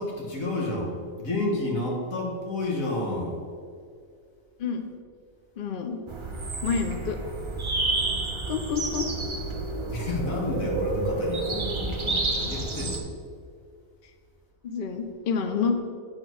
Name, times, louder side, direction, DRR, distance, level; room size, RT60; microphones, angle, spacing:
voice 1, 0.0-3.4 9.8-13.0, left 2 dB, 70° left, -2 dB, 2.1 m, -30 dB
voice 2, 5.6-6.0 6.6-7.2 8.5-9.1 14.6-15.8, left 5 dB, 50° left, 6 dB, 0.7 m, -28 dB
sound 1, 6.1-13.0, right 2 dB, 25° right, 0.7 m, -30 dB
8.9 x 4.4 x 6.2 m, 2.2 s
omnidirectional pair, 1.5 m